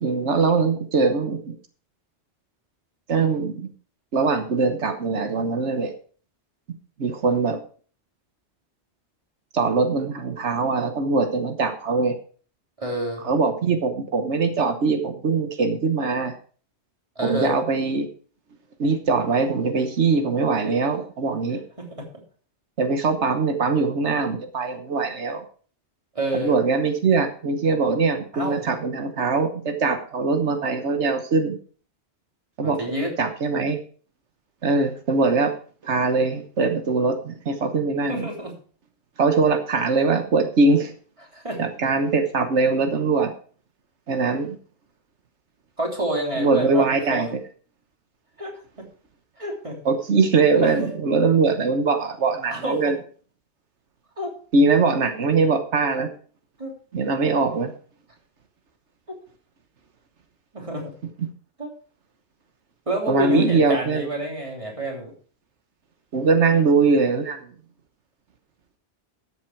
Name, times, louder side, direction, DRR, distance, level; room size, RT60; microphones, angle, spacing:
voice 1, 0.0-1.5 3.1-3.7 4.1-5.9 7.0-7.6 9.5-12.2 13.2-16.3 17.2-18.1 18.8-21.6 22.8-25.4 26.3-31.6 32.6-32.8 33.2-33.8 34.6-35.5 35.8-38.3 39.2-40.9 41.6-43.3 44.1-44.6 46.4-47.3 49.8-52.9 54.5-56.1 56.9-57.7 61.2-61.3 63.1-64.1 66.1-67.4, right 4 dB, 85° right, 6 dB, 1.5 m, -22 dB
voice 2, 12.8-13.2 17.1-17.6 21.8-22.0 26.1-26.6 28.3-28.7 32.6-33.1 38.1-38.5 41.3-41.6 45.8-47.3 48.4-48.9 49.4-49.8 50.5-50.9 52.5-52.9 54.2-54.3 56.6-56.7 60.5-60.8 61.6-61.7 62.9-65.1, right 1 dB, 30° right, 0 dB, 3.3 m, -28 dB
13.5 x 8.0 x 4.6 m, 0.42 s
omnidirectional pair, 1.1 m